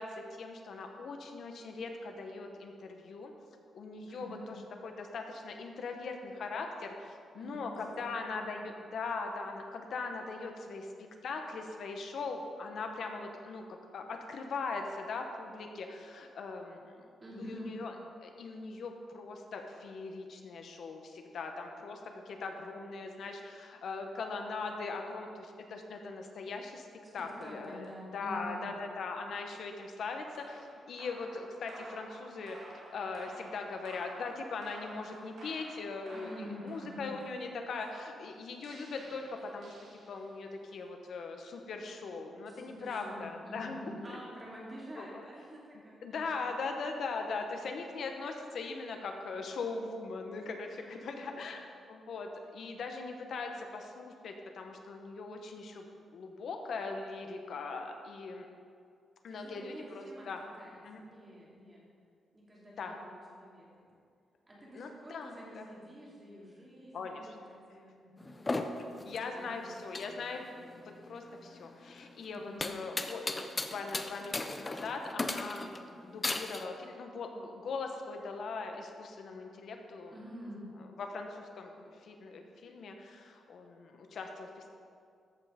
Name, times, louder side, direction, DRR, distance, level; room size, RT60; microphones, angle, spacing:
voice 1, 0.0-3.3 3.7-17.1 17.4-17.9 18.2-26.9 27.1-27.9 28.1-32.6 32.9-39.7 40.1-43.9 45.0-45.3 46.0-51.6 51.9-55.9 56.1-58.5 59.2-60.4 60.8-61.0 62.8-63.0 64.7-65.7 66.9-67.4 69.0-80.1 80.8-84.7, left 4 dB, 60° left, 4 dB, 1.1 m, -40 dB
voice 2, 4.1-4.5 7.3-8.6 17.2-17.8 27.2-28.7 36.1-37.1 42.5-46.5 47.5-47.7 50.8-51.5 59.3-61.8 62.3-63.9 64.5-68.5 69.3-69.8 72.3-72.7 80.1-80.7, equal, 20° right, -5 dB, 2.6 m, -48 dB
sound 1, 30.3-40.5, right 2 dB, 70° right, 2.3 m, -52 dB
sound 2, 68.2-76.6, left 2 dB, 20° left, 0.5 m, -37 dB
14.0 x 5.6 x 5.1 m, 2.3 s
wide cardioid pair, 150°, 0 cm